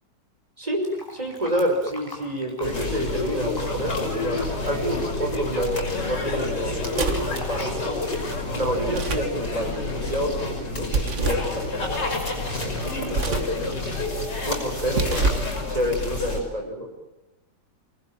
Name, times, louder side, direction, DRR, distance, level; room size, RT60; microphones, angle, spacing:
voice 1, 0.6-8.0 8.5-11.9 12.5-13.7 14.4-16.9, equal, 20° right, 2 dB, 5.6 m, -29 dB
Fill (with liquid), 0.8-7.7, equal, 10° left, 5.7 m, -43 dB
sound 1, 2.6-16.4, left 2 dB, 70° left, 6.2 m, -29 dB
sound 2, 6.9-7.4 8.8-9.4 10.9-11.5 13.1-13.6 14.8-15.5, right 3 dB, 45° right, 1.7 m, -26 dB
24.5 x 19.5 x 9.0 m, 0.99 s
omnidirectional pair, 1.9 m